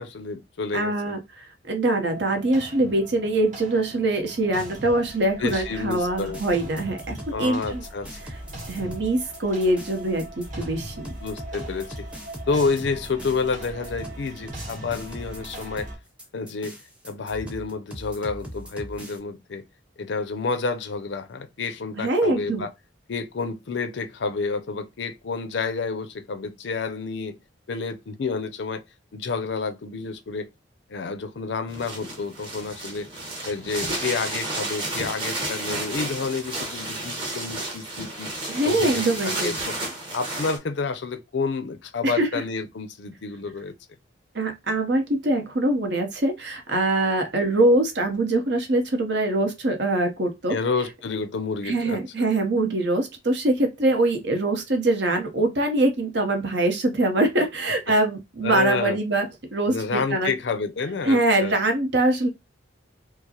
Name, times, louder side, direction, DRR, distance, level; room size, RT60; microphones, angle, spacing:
voice 1, 0.0-1.2 5.4-6.4 7.3-8.2 11.2-12.1 12.5-15.9 16.3-16.8 17.0-19.6 20.0-22.7 23.1-27.4 27.7-28.8 29.1-30.5 30.9-33.1 33.4-38.3 38.6-39.8 40.1-43.7 50.5-52.0 58.4-59.0 59.6-61.6, left 4 dB, 70° left, 0.5 m, -29 dB
voice 2, 0.7-7.8 8.7-11.1 22.0-22.6 38.5-39.6 42.0-42.3 44.3-50.6 51.6-60.3 61.0-62.3, right 2 dB, 65° right, 0.9 m, -23 dB
sound 1, 2.1-15.9, right 1 dB, 45° right, 1.6 m, -40 dB
sound 2, 5.5-19.2, equal, 5° right, 0.7 m, -40 dB
sound 3, 31.7-40.6, right 2 dB, 25° right, 1.0 m, -32 dB
4.6 x 2.0 x 2.9 m
head